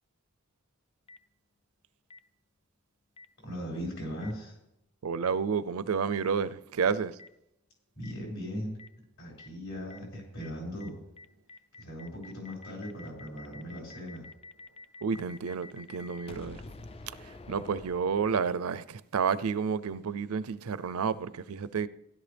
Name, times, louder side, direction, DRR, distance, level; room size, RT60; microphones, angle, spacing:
Boom, 1.1-1.2 2.1-2.2 3.2-3.3 4.2-4.3 5.2-5.3 6.2-6.3 7.2-7.3 8.0-8.1 8.8-8.9 9.4-9.5 9.9-10.0 10.4-10.5 10.8-10.9 11.2-18.7, left 2 dB, 25° left, 0.4 m, -48 dB
voice 1, 3.4-4.6 8.0-8.8 9.2-11.0 11.8-14.3, equal, 55° left, 5.5 m, -38 dB
voice 2, 5.0-7.1 15.0-16.6 17.5-21.9, right 6 dB, 80° right, 0.5 m, -30 dB
16.0 x 11.5 x 3.4 m
head